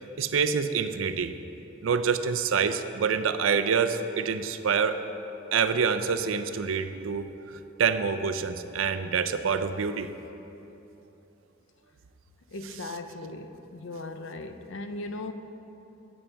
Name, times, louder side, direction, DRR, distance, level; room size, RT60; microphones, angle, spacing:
voice 1, 0.2-1.3 1.8-5.0 5.5-7.3 7.8-10.1, right 6 dB, 90° right, 9 dB, 0.5 m, -26 dB
voice 2, 12.5-15.3, left 2 dB, 70° left, 8 dB, 0.6 m, -38 dB
12.5 x 8.7 x 3.4 m, 3.0 s
head